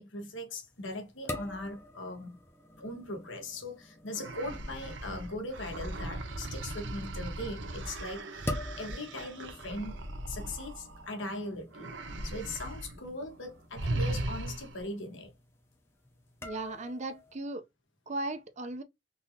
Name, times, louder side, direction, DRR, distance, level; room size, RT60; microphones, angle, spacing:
voice 1, 0.0-2.4 2.8-8.5 8.8-10.0 10.3-11.9 12.2-15.3, left 1 dB, 90° left, 1.3 m, -40 dB
sound 1, 0.6-17.4, left 1 dB, 15° left, 0.6 m, -46 dB
sound 2, 4.1-11.3 11.7-13.0 13.2-13.4 13.7-14.9, right 1 dB, 80° right, 0.8 m, -38 dB
voice 2, 16.4-17.6 18.1-18.8, right 2 dB, 40° right, 0.6 m, -37 dB
3.8 x 2.8 x 2.7 m
head